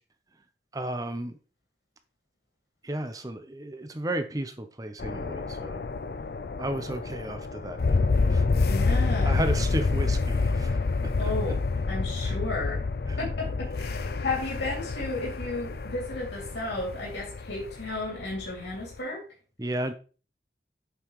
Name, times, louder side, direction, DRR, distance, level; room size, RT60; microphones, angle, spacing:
voice 1, 0.7-1.3 2.8-5.8 6.6-8.0 8.3-8.4 9.2-10.8 11.2-11.3 12.2-12.4 13.1-13.2 19.6-19.9, right 1 dB, 20° right, 8 dB, 0.7 m, -33 dB
sound 1, 5.0-18.9, left 3 dB, 55° left, 0.5 m, -28 dB
voice 2, 8.6-9.5 11.2-11.6 11.9-12.9 13.2-19.2, left 2 dB, 80° left, -3 dB, 2.6 m, -33 dB
8.3 x 5.6 x 3.1 m, 0.37 s
head